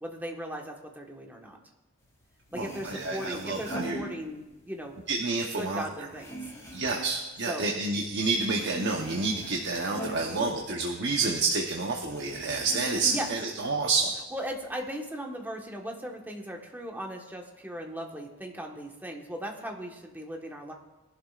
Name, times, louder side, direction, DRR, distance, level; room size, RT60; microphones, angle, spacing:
voice 1, 0.0-1.6 2.5-5.0 5.6-6.4 7.5-7.8 10.2-10.5 13.1-13.3 14.3-20.7, equal, 10° right, 1 dB, 1.4 m, -38 dB
sound 1, 2.2-2.3 2.5-4.7 5.1-8.0 8.3-11.3 11.5-11.6 12.1-13.6 14.0-14.7, right 1 dB, 15° left, 3.7 m, -41 dB
voice 2, 2.6-4.0 5.1-6.1 6.7-14.1, right 3 dB, 60° right, 1 dB, 1.0 m, -29 dB
20.5 x 11.5 x 2.5 m, 1.1 s
head